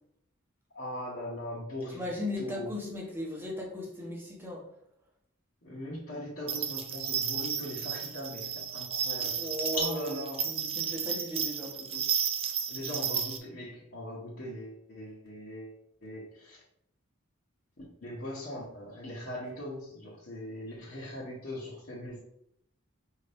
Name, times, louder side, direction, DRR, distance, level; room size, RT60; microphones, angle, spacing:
voice 1, 0.7-2.1 2.4-2.7 5.6-9.5 9.7-10.5 12.7-15.7 16.0-16.6 17.8-22.2, left 1 dB, 50° left, -8 dB, 1.0 m, -40 dB
voice 2, 1.9-4.6 9.2-10.2 10.4-12.0, left 1 dB, 10° right, -3 dB, 1.0 m, -37 dB
sound 1, 6.5-13.4, right 8 dB, 25° right, 0.3 m, -33 dB
5.0 x 2.7 x 3.4 m, 0.75 s
head